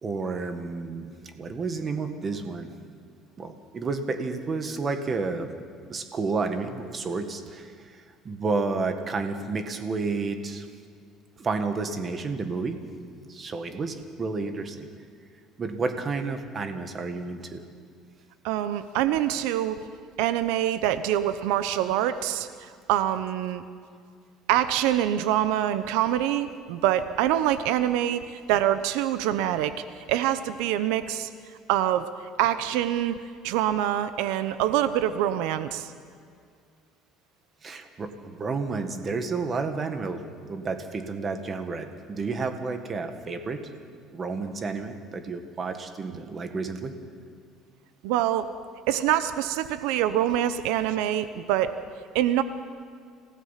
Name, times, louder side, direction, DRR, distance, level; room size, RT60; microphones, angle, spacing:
voice 1, 0.0-2.7 3.4-5.5 5.9-8.0 8.2-10.7 11.4-12.8 13.3-14.9 15.6-17.6 37.6-40.2 40.5-43.6 44.1-46.9, right 4 dB, 25° right, 7 dB, 1.6 m, -31 dB
voice 2, 18.4-19.8 20.2-22.5 22.9-23.6 24.5-29.7 30.1-31.3 31.7-32.1 32.4-35.9 48.0-48.5 48.9-51.7 52.1-52.4, right 12 dB, 85° right, 12 dB, 0.8 m, -25 dB
27.0 x 17.0 x 5.8 m, 2.2 s
cardioid pair, 145°, 0 cm